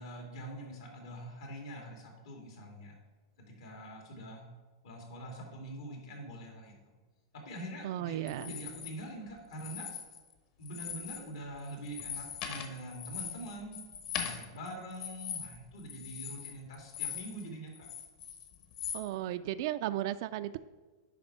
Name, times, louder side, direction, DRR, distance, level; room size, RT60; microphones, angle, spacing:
voice 1, 0.0-3.0 3.5-4.5 4.8-6.7 7.3-9.9 10.6-13.8 14.1-17.9, right 1 dB, 80° left, 1 dB, 2.3 m, -44 dB
voice 2, 7.8-8.5 18.9-20.6, right 13 dB, 60° right, 14 dB, 0.3 m, -35 dB
sound 1, 8.3-8.9 9.5-10.3 10.6-11.3 11.6-17.4 17.7-19.0, left 8 dB, 55° left, 1.1 m, -41 dB
10.5 x 3.5 x 5.5 m, 1.3 s
hypercardioid pair, 135°, 2 cm